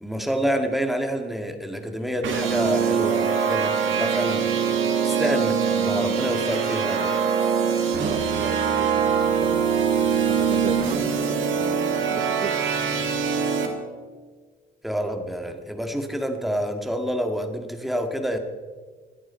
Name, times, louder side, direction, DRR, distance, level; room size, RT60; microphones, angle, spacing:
voice 1, 0.0-4.7 5.0-7.1 14.8-18.4, equal, ahead, 4 dB, 1.9 m, -28 dB
sound 1, 2.2-13.7, right 6 dB, 80° right, 2.2 m, -23 dB
voice 2, 8.0-9.7 10.3-12.6 12.8-13.0, right 6 dB, 40° right, 9 dB, 0.8 m, -36 dB
25.0 x 9.4 x 4.4 m, 1.4 s
cardioid pair, 90°, 20 cm